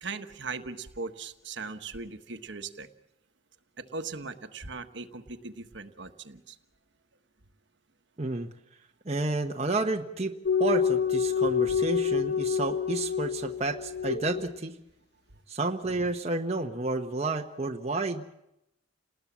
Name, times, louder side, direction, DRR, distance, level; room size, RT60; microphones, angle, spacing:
voice 1, 0.0-2.9 3.8-6.6 11.7-11.8, right 4 dB, 60° right, 7 dB, 1.3 m, -39 dB
voice 2, 8.2-8.5 9.0-10.3 10.6-14.8 15.5-18.3, right 2 dB, 30° right, 2 dB, 1.0 m, -30 dB
sound 1, 10.5-14.6, left 7 dB, 50° left, 0.8 m, -27 dB
29.5 x 19.5 x 7.4 m, 0.89 s
head